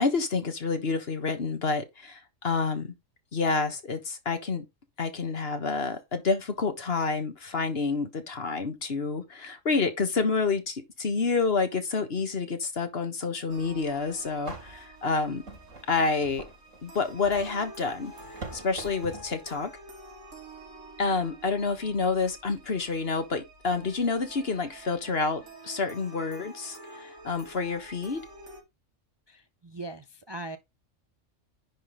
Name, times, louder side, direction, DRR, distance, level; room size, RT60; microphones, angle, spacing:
voice 1, 0.0-2.9 3.3-4.6 5.0-15.4 15.9-16.4 16.8-18.1 18.5-19.7 21.0-28.2, left 4 dB, 50° left, 1.6 m, -28 dB
sound 1, 13.5-28.6, right 1 dB, 65° right, 2.7 m, -48 dB
sound 2, 14.4-19.4, right 3 dB, 90° right, 4.0 m, -44 dB
voice 2, 29.3-30.6, right 2 dB, 30° right, 0.6 m, -40 dB
10.0 x 3.8 x 5.0 m
omnidirectional pair, 1.3 m